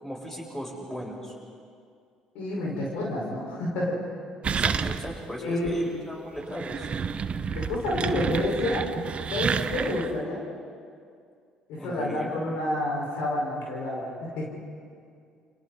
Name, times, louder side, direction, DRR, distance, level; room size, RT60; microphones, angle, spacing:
voice 1, 0.0-1.3 4.5-6.9 11.8-12.4, equal, 15° left, -2 dB, 7.7 m, -37 dB
voice 2, 2.3-4.0 5.4-5.7 7.4-8.8 9.3-10.4 11.8-14.4, left 1 dB, 65° left, -3 dB, 5.4 m, -29 dB
sound 1, 4.4-5.3 5.6-5.7 6.4-10.2, right 6 dB, 40° right, 0.9 m, -29 dB
29.5 x 29.0 x 4.3 m, 2.3 s
figure-of-eight pair, 50°, 3 cm